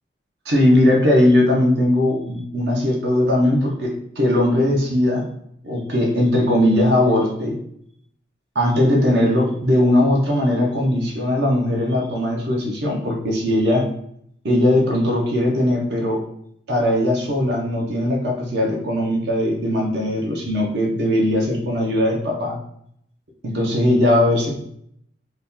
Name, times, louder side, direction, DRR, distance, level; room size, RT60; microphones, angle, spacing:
voice 1, 0.5-5.3 5.6-7.6 8.5-13.8 14.4-16.2 16.7-22.6 23.4-24.5, left 1 dB, 55° right, -1 dB, 0.6 m, -19 dB
2.8 x 2.2 x 3.5 m, 0.70 s
head